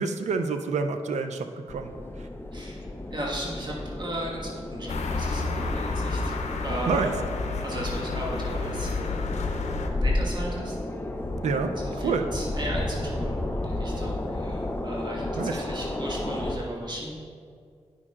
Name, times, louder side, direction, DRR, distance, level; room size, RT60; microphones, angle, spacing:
voice 1, 0.0-1.9 2.2-2.3 6.9-7.1 11.4-11.7 12.0-12.3 15.4-15.6, right 4 dB, 85° right, 7 dB, 0.5 m, -28 dB
sound 1, 1.7-16.6, left 1 dB, 20° left, 0.7 m, -32 dB
voice 2, 2.5-7.1 7.6-9.2 10.0-10.8 11.7-17.1, right 1 dB, 40° right, -4 dB, 1.5 m, -36 dB
sound 2, 4.9-9.9, left 3 dB, 85° left, 0.6 m, -30 dB
9.7 x 6.3 x 2.4 m, 2.2 s
cardioid pair, 55°, 12 cm